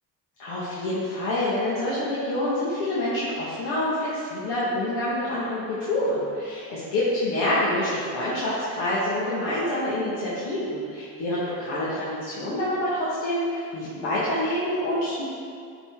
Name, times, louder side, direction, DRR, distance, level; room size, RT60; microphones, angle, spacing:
voice 1, 0.4-15.2, left 1 dB, 85° left, -9 dB, 1.6 m, -27 dB
9.8 x 4.2 x 3.6 m, 2.3 s
cardioid pair, 115°, 42 cm